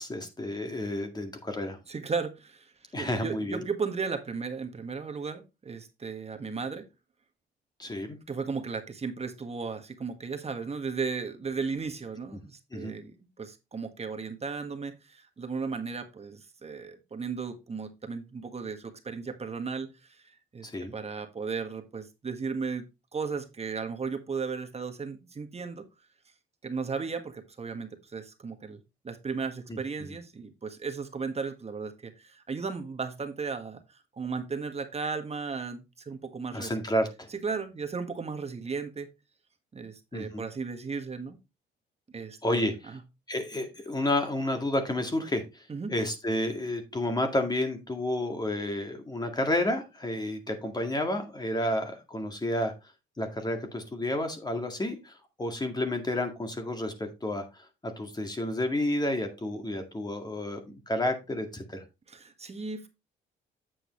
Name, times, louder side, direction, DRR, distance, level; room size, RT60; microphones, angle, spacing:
voice 1, 0.0-1.8 2.9-3.6 7.8-8.2 12.3-12.4 12.7-12.9 20.6-20.9 29.7-30.1 36.5-37.3 40.1-40.5 42.4-43.0 43.3-52.7 53.2-57.4 57.8-61.8, left 1 dB, 20° left, 2.0 m, -31 dB
voice 2, 1.9-6.9 8.3-25.9 26.6-36.7 37.3-39.1 39.7-41.4 42.1-43.0 45.7-46.0 62.1-62.9, right 5 dB, 30° right, 1.5 m, -35 dB
8.5 x 7.8 x 3.1 m
cardioid pair, 90°, 20 cm